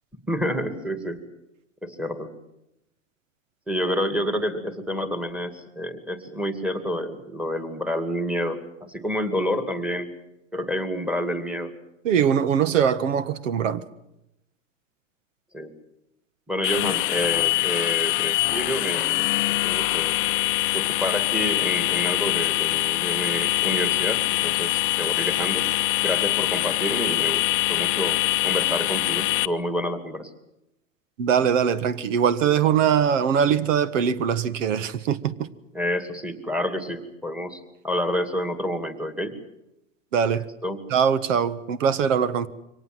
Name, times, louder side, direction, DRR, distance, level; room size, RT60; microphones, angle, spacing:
voice 1, 0.3-1.3 1.8-2.3 3.7-10.1 10.5-11.7 15.5-15.7 16.5-20.2 20.7-25.7 26.0-27.4 27.7-30.3 35.7-39.3 40.6-40.8, equal, 5° right, 2.3 m, -29 dB
voice 2, 12.0-13.8 31.2-35.3 40.1-40.4 40.9-42.5, right 8 dB, 70° right, 1.6 m, -22 dB
sound 1, 16.6-29.4, left 20 dB, 30° left, 0.7 m, -24 dB
24.5 x 18.5 x 7.8 m
hypercardioid pair, 130°, 39 cm